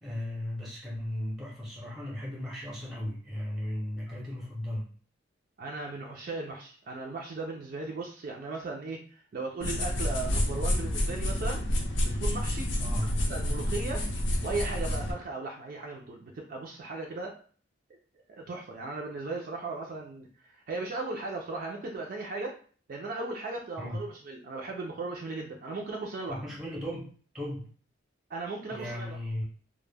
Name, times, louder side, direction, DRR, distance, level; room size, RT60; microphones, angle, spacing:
voice 1, 0.0-4.9 12.8-13.1 23.8-24.0 26.3-27.7 28.7-29.4, left 1 dB, ahead, -5 dB, 0.6 m, -36 dB
voice 2, 5.6-11.6 12.0-12.7 13.0-14.1 14.4-17.4 18.3-22.6 22.9-26.4 28.3-29.2, right 3 dB, 50° right, 0 dB, 0.3 m, -37 dB
sound 1, 9.6-15.1, left 1 dB, 75° left, 0.5 m, -29 dB
2.1 x 2.0 x 3.2 m, 0.43 s
head